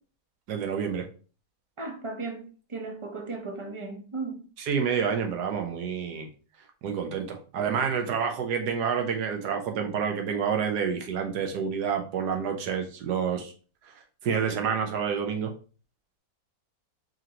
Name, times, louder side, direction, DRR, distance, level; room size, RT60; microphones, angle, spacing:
voice 1, 0.5-1.1 4.6-6.3 6.8-13.5 13.9-14.0 14.2-15.5, right 7 dB, 75° right, 1.3 m, -28 dB
voice 2, 1.8-2.4 2.7-4.5, right 3 dB, 40° right, 0.4 m, -35 dB
5.0 x 3.0 x 2.8 m
omnidirectional pair, 1.8 m